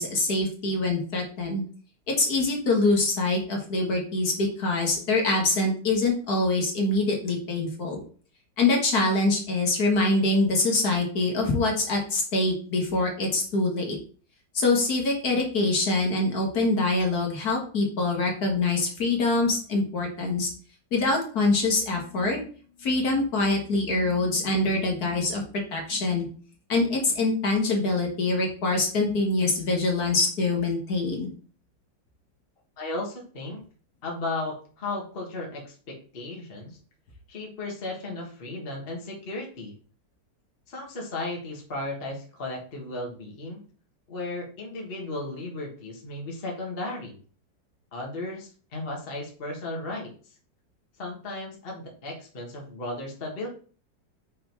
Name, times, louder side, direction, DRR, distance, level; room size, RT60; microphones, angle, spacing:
voice 1, 0.0-1.6 2.1-8.0 8.6-14.0 14.5-20.5 20.9-22.4 22.8-25.4 25.7-26.3 26.7-31.3, left 2 dB, 60° left, 0 dB, 1.8 m, -24 dB
voice 2, 32.8-33.6 34.0-36.8 37.3-39.7 40.7-43.6 44.1-47.2 47.9-50.1 51.0-53.5, left 2 dB, 35° left, -1 dB, 1.4 m, -35 dB
5.5 x 3.7 x 4.5 m, 0.42 s
omnidirectional pair, 1.9 m